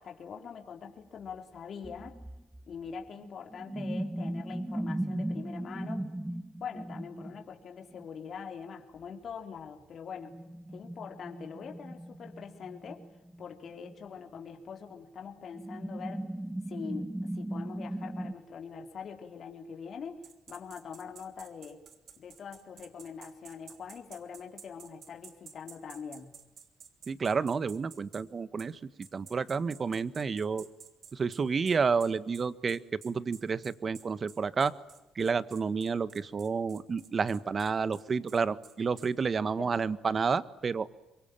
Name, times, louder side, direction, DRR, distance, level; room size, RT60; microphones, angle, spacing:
voice 1, 0.0-2.2 2.7-6.1 6.6-10.4 10.7-13.1 13.4-16.3 16.7-21.8 22.2-26.3 39.6-40.0, left 6 dB, 60° left, 3 dB, 3.7 m, -43 dB
sound 1, 1.3-1.4 1.8-7.4 7.9-8.1 10.3-14.4 14.9-15.0 15.5-18.3, right 1 dB, 10° right, 1.5 m, -38 dB
sound 2, 20.2-28.2 28.6-28.7 29.0-39.1, right 7 dB, 65° right, 3.2 m, -52 dB
voice 2, 27.1-28.8 29.1-30.7 31.1-34.7 35.1-40.9, right 5 dB, 45° right, 15 dB, 1.5 m, -30 dB
26.0 x 23.5 x 9.0 m, 1.0 s
supercardioid pair, 65°, 0 cm